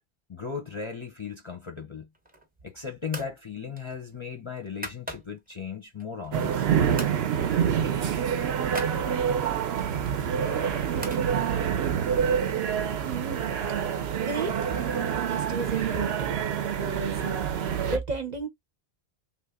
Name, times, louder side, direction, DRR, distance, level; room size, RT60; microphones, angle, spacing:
voice 1, 0.3-2.1 2.6-6.6, left 6 dB, 35° left, 0.6 m, -37 dB
sound 1, 2.1-2.6 3.1-3.4 3.7-5.5 6.0-6.7 7.0-7.2 7.5-7.7 7.9-9.0 9.8-11.2, equal, 10° right, 0.6 m, -41 dB
sound 2, 6.3-18.0, right 8 dB, 75° right, 0.9 m, -27 dB
voice 2, 13.0-13.5 14.2-14.8 15.1-18.5, right 4 dB, 45° right, 0.7 m, -34 dB
3.3 x 2.3 x 3.5 m
omnidirectional pair, 1.1 m